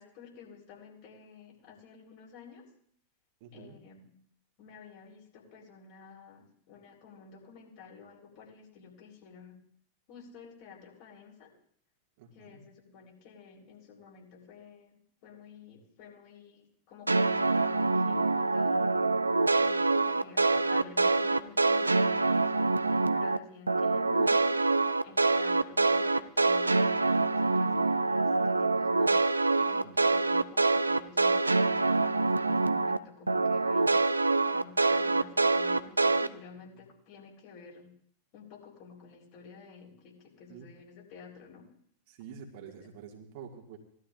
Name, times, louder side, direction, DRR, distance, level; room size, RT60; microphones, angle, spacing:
voice 1, 0.0-2.7 3.5-4.2 4.6-9.6 10.1-11.5 12.3-18.8 19.5-24.6 25.0-29.2 29.6-33.9 34.5-37.9 38.3-41.7 42.7-42.8, left 5 dB, 45° left, -2 dB, 4.0 m, -51 dB
voice 2, 3.4-3.8 12.2-12.6 22.8-23.0 29.8-30.0 40.5-40.7 42.1-43.8, right 7 dB, 50° right, 1 dB, 1.9 m, -48 dB
sound 1, 17.1-23.4 23.7-33.0 33.3-36.3, right 3 dB, 80° right, 0.4 m, -25 dB
19.0 x 12.5 x 2.5 m, 0.62 s
figure-of-eight pair, 90°, 0 cm